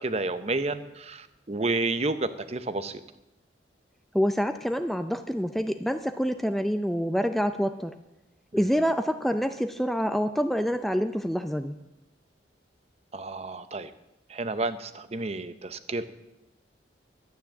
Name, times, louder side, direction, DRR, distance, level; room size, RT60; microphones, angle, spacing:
voice 1, 0.0-3.0 8.5-8.6 13.1-13.9 14.3-16.0, right 2 dB, 35° right, 12 dB, 0.7 m, -30 dB
voice 2, 4.1-7.9 8.5-11.8, equal, ahead, 9 dB, 0.4 m, -27 dB
12.0 x 9.3 x 7.4 m, 0.93 s
head